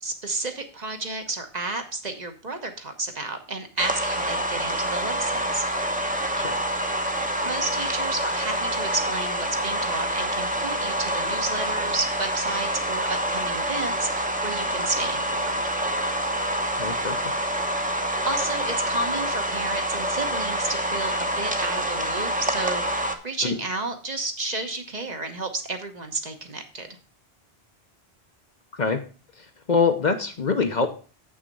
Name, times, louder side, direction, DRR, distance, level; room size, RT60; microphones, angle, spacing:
voice 1, 0.0-5.6 7.4-15.6 18.2-27.0, right 2 dB, 45° right, 5 dB, 1.2 m, -32 dB
sound 1, 3.8-23.1, right 1 dB, 10° right, 0.8 m, -27 dB
voice 2, 16.8-17.2 23.4-23.5 28.8-29.0 29.7-30.9, left 5 dB, 50° left, 7 dB, 0.8 m, -23 dB
7.4 x 6.1 x 5.4 m, 0.38 s
omnidirectional pair, 1.0 m